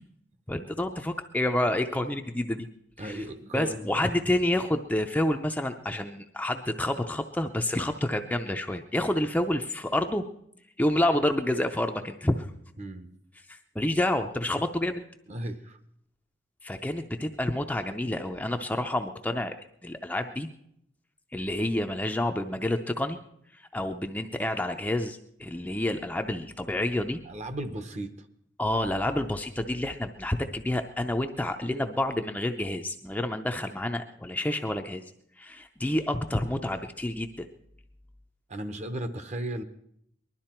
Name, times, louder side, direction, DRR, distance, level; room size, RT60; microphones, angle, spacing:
voice 1, 0.5-2.7 3.0-3.2 3.5-10.3 10.8-12.5 13.5-15.0 16.6-19.5 19.8-20.5 21.3-23.2 23.5-27.2 28.6-35.0 35.4-37.5, left 1 dB, 10° left, 5 dB, 0.5 m, -29 dB
voice 2, 3.0-3.9 12.8-13.2 15.3-15.8 27.2-28.3 38.5-39.6, right 1 dB, 35° right, 9 dB, 0.9 m, -35 dB
20.0 x 12.0 x 4.4 m, 0.72 s
head